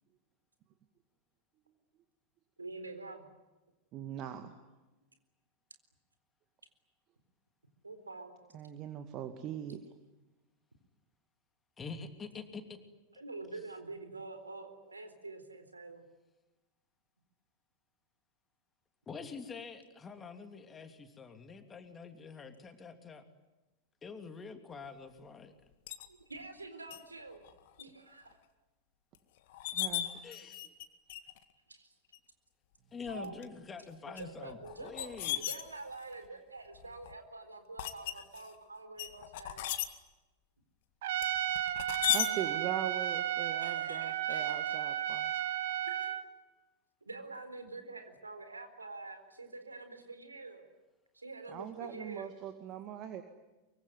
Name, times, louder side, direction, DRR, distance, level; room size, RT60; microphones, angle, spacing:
voice 1, 2.6-3.2 7.8-8.3 13.1-16.0 20.8-20.9 24.7-24.9 26.1-27.5 27.8-28.4 30.3-30.4 31.7-31.9 33.1-33.4 34.1-39.7 43.6-44.7 45.8-46.1 47.1-50.6 51.1-52.3, right 3 dB, 80° right, 9 dB, 4.0 m, -46 dB
voice 2, 3.9-4.5 8.5-9.8 29.7-30.1 42.1-45.3 51.5-53.2, right 10 dB, 35° right, 8 dB, 2.1 m, -41 dB
voice 3, 11.8-12.8 19.1-23.2 24.0-25.5 30.1-30.6 32.9-35.4, left 5 dB, 20° left, 8 dB, 3.0 m, -46 dB
sound 1, 25.9-26.1 26.9-27.0 27.4-27.8 28.3-28.4 29.1-29.2 29.5-30.8 31.1-31.4 32.1-32.2 33.1-33.4 34.2-36.1 36.7-37.1 37.8-38.5 39.0-39.9 41.2-42.3, left 13 dB, 50° left, 2.0 m, -36 dB
Trumpet, 41.0-46.3, right 11 dB, 55° right, 1.9 m, -33 dB
24.0 x 24.0 x 9.8 m, 1.1 s
figure-of-eight pair, 90°, 0 cm